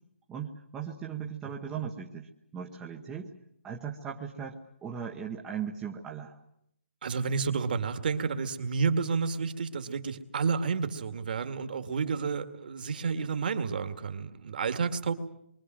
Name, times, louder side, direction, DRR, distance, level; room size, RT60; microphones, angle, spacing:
voice 1, 0.3-3.3 3.6-6.4, right 7 dB, 10° right, -1 dB, 1.1 m, -38 dB
voice 2, 7.0-15.1, right 5 dB, 45° right, 8 dB, 2.1 m, -30 dB
27.5 x 23.5 x 7.7 m, 0.76 s
hypercardioid pair, 165°, 7 cm